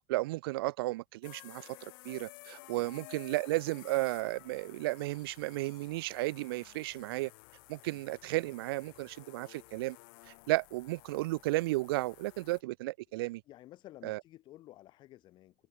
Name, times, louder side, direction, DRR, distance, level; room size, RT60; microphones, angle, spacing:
voice 1, 0.0-7.3 7.7-10.0 10.3-13.4 14.0-14.2, right 20 dB, 75° right, 0.8 m, -34 dB
sound 1, 1.2-12.6, left 28 dB, 60° left, 5.0 m, -54 dB
voice 2, 13.5-15.7, left 15 dB, 40° left, 4.3 m, -53 dB
supercardioid pair, 145°, 13 cm